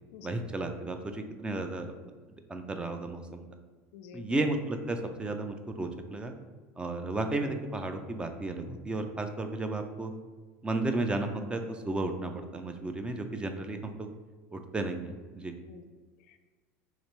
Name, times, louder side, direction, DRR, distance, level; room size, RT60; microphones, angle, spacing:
voice 1, 0.2-1.9 2.3-3.4 4.1-6.3 6.8-10.1 10.6-14.1 14.5-15.5, right 2 dB, 15° right, 6 dB, 0.4 m, -33 dB
voice 2, 3.9-4.4 15.7-16.4, left 7 dB, 75° left, 8 dB, 0.4 m, -50 dB
2.9 x 2.8 x 4.3 m, 1.3 s
supercardioid pair, 110°, 7 cm